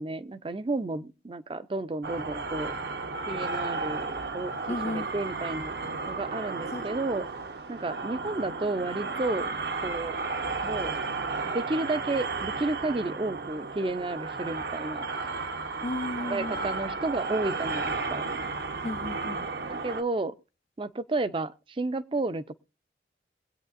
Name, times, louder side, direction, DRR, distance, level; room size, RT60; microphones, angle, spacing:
voice 1, 0.0-2.7 3.3-4.5 4.8-5.8 6.1-7.3 7.7-9.5 9.8-10.2 10.6-11.0 11.4-15.1 16.2-18.3 19.7-20.3 20.8-22.5, right 2 dB, 30° right, 0.5 m, -32 dB
sound 1, 2.0-20.0, right 4 dB, 70° right, 0.9 m, -33 dB
voice 2, 4.7-5.1 6.7-6.9 15.8-16.6 18.8-19.5, left 2 dB, 40° left, 0.6 m, -34 dB
22.5 x 8.6 x 2.5 m
head